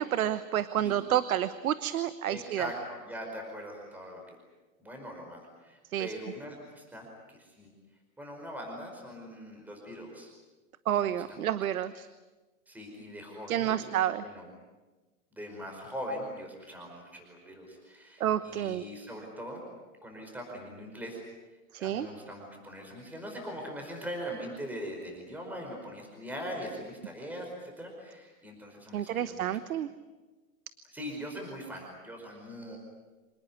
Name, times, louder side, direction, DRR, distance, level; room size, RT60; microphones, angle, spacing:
voice 1, 0.0-2.7 5.9-6.1 10.9-12.1 13.5-14.2 18.2-18.8 21.7-22.1 28.9-29.9, right 11 dB, 90° right, 13 dB, 1.2 m, -29 dB
voice 2, 2.3-4.3 4.8-7.7 8.2-10.3 11.0-11.5 12.7-14.5 15.3-19.6 20.0-21.2 21.5-29.6 30.8-32.8, equal, 5° right, 1 dB, 4.9 m, -41 dB
26.5 x 19.0 x 9.6 m, 1.2 s
supercardioid pair, 160°, 42 cm